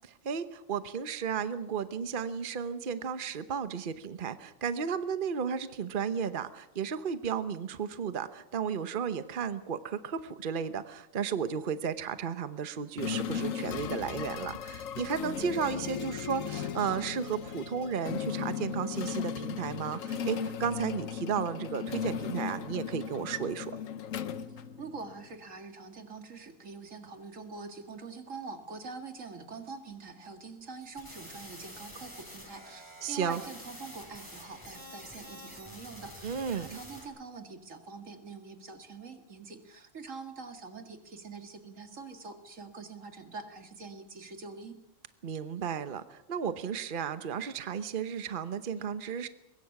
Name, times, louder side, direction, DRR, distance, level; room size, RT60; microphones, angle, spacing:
voice 1, 0.2-23.8 33.0-33.4 36.2-36.8 45.2-49.3, right 7 dB, 45° right, 11 dB, 1.1 m, -34 dB
sound 1, 13.0-25.2, left 8 dB, 80° left, 1.4 m, -36 dB
voice 2, 24.8-44.8, right 4 dB, 75° right, 6 dB, 2.4 m, -44 dB
sound 2, 30.8-37.0, equal, 15° left, 5.7 m, -48 dB
23.0 x 21.0 x 6.0 m, 0.89 s
omnidirectional pair, 1.3 m